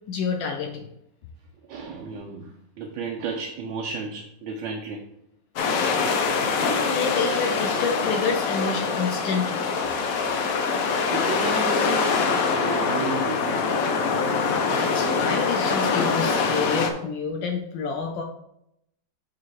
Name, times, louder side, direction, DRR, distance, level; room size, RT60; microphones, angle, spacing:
voice 1, 0.1-0.9 6.7-9.7 14.4-18.2, left 5 dB, 85° left, 3 dB, 1.4 m, -29 dB
voice 2, 1.6-5.0 7.2-7.3 11.1-13.6, right 4 dB, 80° right, 1 dB, 1.4 m, -33 dB
sound 1, 5.6-16.9, left 5 dB, 60° left, 1.0 m, -24 dB
5.4 x 4.9 x 4.7 m, 0.79 s
omnidirectional pair, 2.0 m